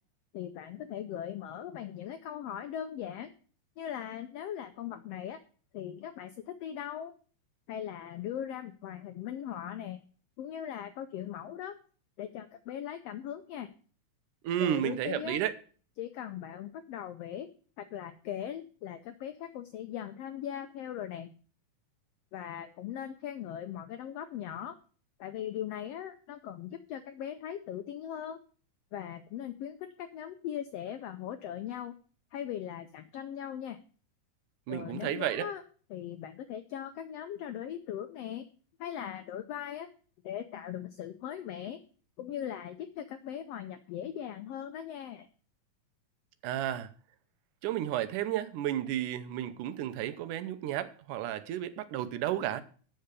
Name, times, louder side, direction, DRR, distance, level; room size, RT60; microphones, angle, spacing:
voice 1, 0.3-3.3 3.8-5.4 5.7-7.2 7.7-10.0 10.4-11.7 12.2-13.7 14.6-15.4 16.0-17.5 17.8-21.3 22.3-24.7 25.2-28.4 28.9-32.0 32.3-33.8 34.7-35.6 35.9-38.5 38.8-39.9 40.2-41.8 42.2-45.3, left 10 dB, 85° left, 1.4 m, -39 dB
voice 2, 14.4-15.5 34.7-35.5 46.4-46.9 47.6-52.6, right 12 dB, 85° right, 2.3 m, -32 dB
7.9 x 6.7 x 8.1 m
omnidirectional pair, 3.6 m